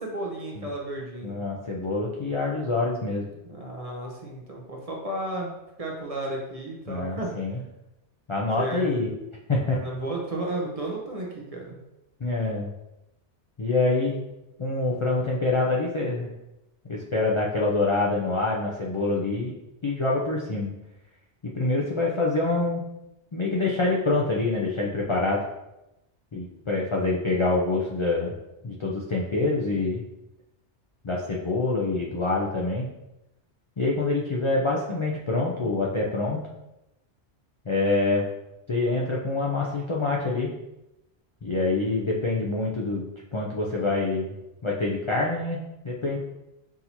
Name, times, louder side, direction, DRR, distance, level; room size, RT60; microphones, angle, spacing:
voice 1, 0.0-1.4 3.4-5.5 5.8-7.3 8.6-9.0 9.6-11.8, right 1 dB, 40° right, -2 dB, 0.7 m, -33 dB
voice 2, 1.2-3.3 6.9-7.6 8.3-9.1 9.5-9.8 12.2-12.7 13.6-14.2 14.6-16.3 16.9-19.5 19.8-20.7 21.4-22.8 23.3-25.4 26.3-28.4 28.6-30.0 31.0-32.9 33.8-36.4 37.7-38.3 38.7-40.5 41.4-44.4 44.6-46.2, left 2 dB, 45° left, -4 dB, 0.4 m, -26 dB
6.0 x 2.7 x 2.9 m, 0.92 s
omnidirectional pair, 1.2 m